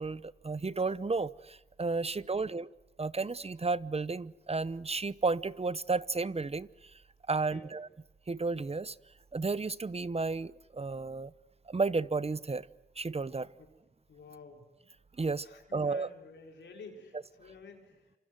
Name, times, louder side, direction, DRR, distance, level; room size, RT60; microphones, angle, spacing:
voice 1, 0.0-2.7 3.0-6.9 7.3-7.9 8.3-9.0 9.3-11.3 11.7-12.7 13.0-13.5 15.2-15.5 15.7-16.1, right 3 dB, 35° right, 18 dB, 0.9 m, -32 dB
voice 2, 7.3-7.7 13.6-13.7 14.1-14.7 15.4-18.1, left 4 dB, 85° left, 3 dB, 4.6 m, -52 dB
27.5 x 25.5 x 7.8 m, 1.1 s
cardioid pair, 50°, 18 cm